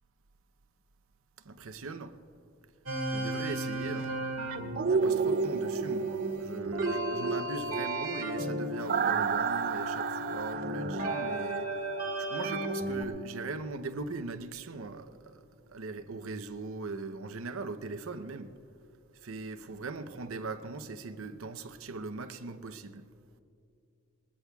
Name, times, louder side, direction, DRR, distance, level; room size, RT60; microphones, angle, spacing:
voice 1, 1.4-2.2 3.1-4.2 4.9-11.9 12.2-18.6 19.2-23.1, right 3 dB, 75° right, 0.7 m, -40 dB
sound 1, 2.9-13.0, right 1 dB, 90° right, 1.8 m, -35 dB
sound 2, 4.8-12.6 13.0-13.1, right 5 dB, 45° right, 0.4 m, -32 dB
21.0 x 19.5 x 2.3 m
head